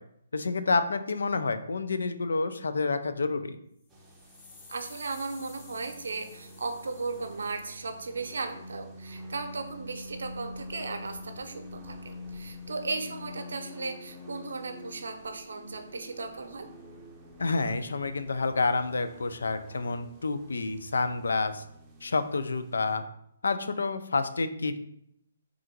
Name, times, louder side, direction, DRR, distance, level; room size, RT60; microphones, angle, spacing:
voice 1, 0.3-3.6 17.4-21.6 22.0-23.0 23.4-24.8, left 3 dB, 80° left, 10 dB, 0.4 m, -29 dB
sound 1, 3.8-8.0, left 3 dB, 25° left, 0.8 m, -53 dB
sound 2, 3.9-23.0, left 1 dB, 10° right, 0.6 m, -47 dB
voice 2, 4.7-16.7, right 3 dB, 80° right, 6 dB, 0.6 m, -36 dB
3.6 x 2.5 x 4.5 m, 0.74 s
hypercardioid pair, 150°, 0 cm